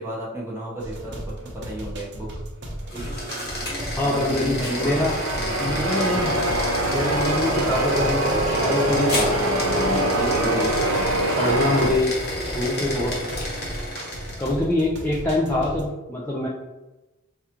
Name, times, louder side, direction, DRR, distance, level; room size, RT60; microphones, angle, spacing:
voice 1, 0.0-2.3 2.9-3.2 4.0-5.0 5.4-6.1, right 1 dB, 10° right, -5 dB, 0.9 m, -34 dB
sound 1, 0.8-15.9, right 1 dB, 55° right, 0.8 m, -36 dB
sound 2, 2.8-14.6, left 1 dB, 45° left, 1.0 m, -30 dB
voice 2, 4.0-5.2 5.6-6.4 6.9-10.7 11.4-12.1 12.4-13.2 14.4-16.5, left 1 dB, 10° left, -5 dB, 0.4 m, -25 dB
Church bell, 4.6-11.9, right 1 dB, 85° right, 0.7 m, -24 dB
4.8 x 2.4 x 2.9 m, 1.1 s
head